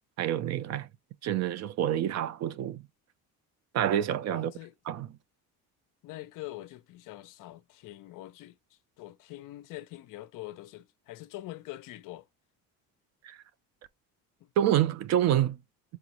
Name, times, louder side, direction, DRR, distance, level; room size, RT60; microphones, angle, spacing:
voice 1, 0.2-0.9 1.2-2.8 3.7-4.5 4.9-5.1 13.2-13.4 14.6-15.6, right 11 dB, 50° right, 0.4 m, -27 dB
voice 2, 4.3-4.7 6.0-8.6 9.0-12.2 14.4-14.5, left 16 dB, 60° left, 0.6 m, -44 dB
4.7 x 2.4 x 2.9 m
cardioid pair, 150°, 36 cm